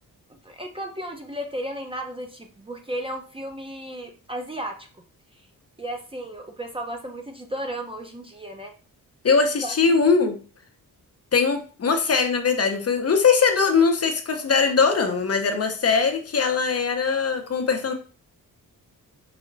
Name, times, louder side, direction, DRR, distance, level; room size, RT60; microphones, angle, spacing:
voice 1, 0.3-4.9 5.3-5.4 5.8-8.7 9.6-10.0, right 1 dB, 15° right, 3 dB, 0.6 m, -34 dB
voice 2, 9.2-10.4 11.3-17.9, left 5 dB, 45° left, 5 dB, 0.7 m, -21 dB
4.9 x 2.1 x 3.8 m, 0.37 s
cardioid pair, 95°, 36 cm